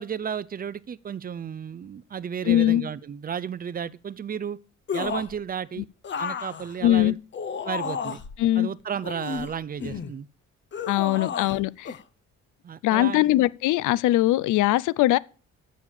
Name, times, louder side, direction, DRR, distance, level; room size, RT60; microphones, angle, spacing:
voice 1, 0.0-4.6 4.9-5.9 6.2-7.2 7.6-8.2 8.6-10.3 11.2-11.3 12.6-13.3, right 7 dB, 30° right, 0.5 m, -33 dB
voice 2, 2.5-2.8 6.8-7.2 8.4-8.7 10.9-11.9 12.8-15.2, left 15 dB, 80° left, 0.5 m, -21 dB
sound 1, 4.9-5.4 6.0-8.4 9.0-10.1 10.7-11.6 11.9-12.0, left 6 dB, 40° left, 0.8 m, -32 dB
6.9 x 6.3 x 7.4 m
cardioid pair, 90°, 30 cm